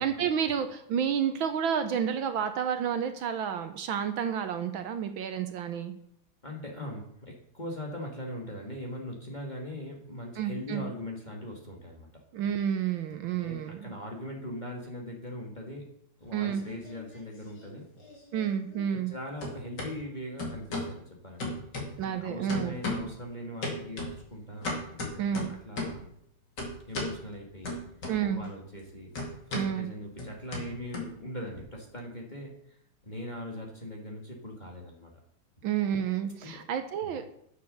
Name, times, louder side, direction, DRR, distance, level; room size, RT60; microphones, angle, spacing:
voice 1, 0.0-5.9 10.4-10.9 12.3-14.0 16.3-16.6 18.3-19.1 22.0-22.8 25.2-25.5 28.1-28.4 29.5-29.9 35.6-37.3, right 8 dB, 70° right, 8 dB, 1.4 m, -30 dB
voice 2, 6.4-12.1 13.3-15.9 16.2-17.9 18.9-21.4 21.8-24.7 25.6-26.1 26.9-27.8 28.2-32.6 33.0-35.1 36.4-36.6 37.0-37.1, left 1 dB, 20° left, 0 dB, 1.6 m, -40 dB
sound 1, 16.3-17.2 17.5-19.1 19.4-19.9 20.4-21.0 21.4-22.2 22.5-23.2 23.6-26.1 26.6-27.2 27.6-28.5 28.7-31.6, left 2 dB, 50° left, 2.8 m, -36 dB
9.2 x 6.7 x 6.6 m, 0.70 s
omnidirectional pair, 2.4 m